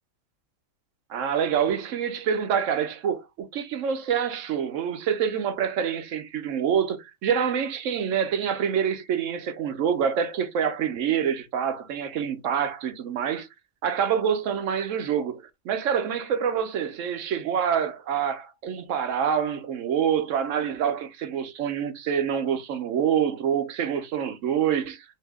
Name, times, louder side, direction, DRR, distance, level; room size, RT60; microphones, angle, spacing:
voice 1, 1.1-13.5 13.8-25.0, right 8 dB, 70° right, 0.9 m, -26 dB
2.8 x 2.7 x 3.3 m
omnidirectional pair, 1.4 m